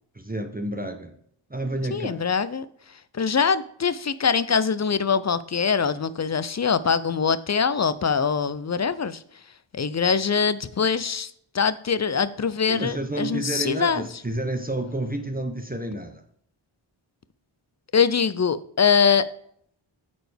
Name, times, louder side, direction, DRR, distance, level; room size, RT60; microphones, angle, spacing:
voice 1, 0.1-1.1 1.5-2.2 12.7-16.2, right 1 dB, 20° right, 6 dB, 0.7 m, -30 dB
voice 2, 1.9-2.7 3.1-9.2 9.7-14.0 17.9-19.3, left 6 dB, 35° left, 15 dB, 0.4 m, -23 dB
8.8 x 4.2 x 3.4 m, 0.66 s
wide cardioid pair, 55°, 48 cm